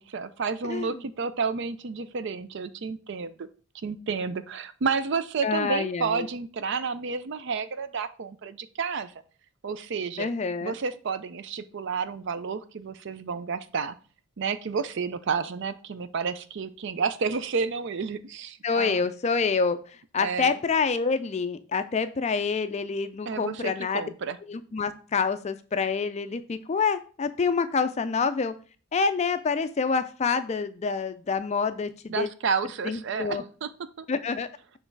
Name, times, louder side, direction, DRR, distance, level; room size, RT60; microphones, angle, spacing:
voice 1, 0.0-3.5 3.8-9.1 9.6-10.3 10.6-14.0 14.4-19.0 20.2-20.6 23.3-24.4 32.1-33.7 34.0-34.1, right 5 dB, 55° right, 13 dB, 0.4 m, -31 dB
voice 2, 0.6-1.0 5.4-6.3 10.2-10.7 18.6-19.8 20.1-24.1 24.5-28.5 28.9-32.3 32.8-33.4 34.1-34.5, left 5 dB, 30° left, 11 dB, 0.4 m, -27 dB
6.6 x 3.3 x 4.6 m, 0.39 s
head